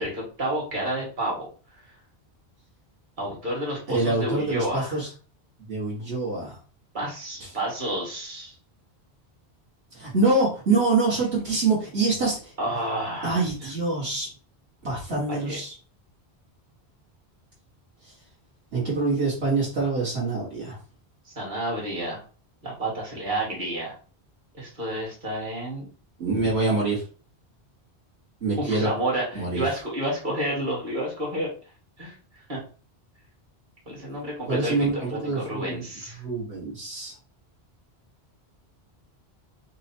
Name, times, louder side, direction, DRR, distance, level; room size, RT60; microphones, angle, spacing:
voice 1, 0.0-1.5 3.2-5.0 6.9-8.5 12.6-13.4 15.3-15.6 21.3-22.2 22.6-24.0 24.6-25.8 28.6-31.5 32.0-32.2 32.5-32.6 33.9-36.2, right 1 dB, 50° right, -3 dB, 1.8 m, -30 dB
voice 2, 3.9-5.1 5.7-6.6 7.4-7.5 9.9-12.5 13.2-14.3 14.8-15.7 18.7-20.8 26.2-27.0 28.4-28.9 29.3-29.6 34.4-35.8 36.2-37.1, right 3 dB, 70° right, -6 dB, 1.5 m, -25 dB
4.5 x 2.0 x 4.3 m, 0.38 s
omnidirectional pair, 1.1 m